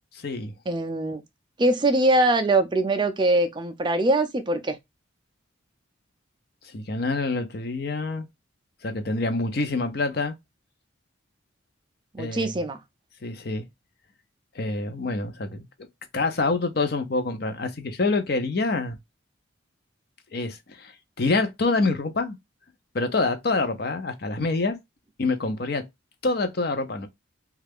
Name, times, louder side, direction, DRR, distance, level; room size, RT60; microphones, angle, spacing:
voice 1, 0.1-0.5 6.7-8.3 8.8-10.4 12.2-12.5 13.2-13.6 14.5-15.7 16.1-19.0 20.3-20.9 21.2-22.4 22.9-24.8 25.2-25.8 26.2-27.1, left 3 dB, 50° left, 0.6 m, -26 dB
voice 2, 0.7-1.2 1.6-4.8 12.1-12.8, right 2 dB, 20° right, 0.3 m, -22 dB
3.2 x 2.4 x 3.4 m
head